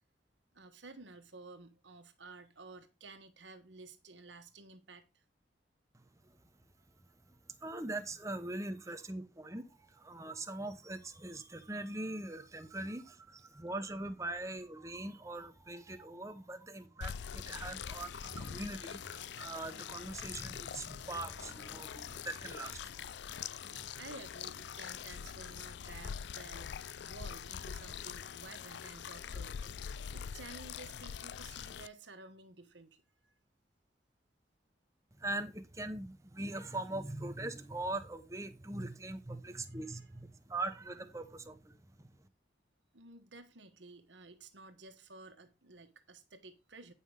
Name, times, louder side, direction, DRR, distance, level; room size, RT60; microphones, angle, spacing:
voice 1, 0.5-5.2 23.6-26.8 27.1-33.3 39.5-40.1 42.9-46.9, right 3 dB, 85° right, 1.4 m, -53 dB
voice 2, 5.9-6.4 7.6-23.1 35.2-42.2, right 2 dB, 15° right, 0.9 m, -42 dB
sound 1, 17.0-31.9, left 7 dB, 75° left, 0.4 m, -44 dB
9.8 x 5.7 x 4.8 m
head